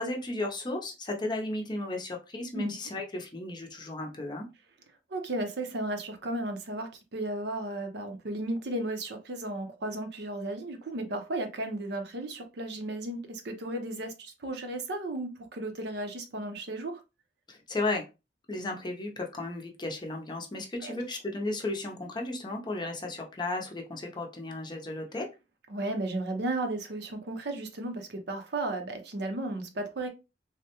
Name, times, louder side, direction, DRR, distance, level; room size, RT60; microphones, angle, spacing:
voice 1, 0.0-4.5 17.5-18.1 18.5-25.3, left 2 dB, 25° left, 2 dB, 0.6 m, -34 dB
voice 2, 5.1-17.0 20.8-21.0 25.7-30.1, right 2 dB, 65° right, 6 dB, 0.6 m, -34 dB
3.4 x 2.1 x 2.9 m, 0.27 s
head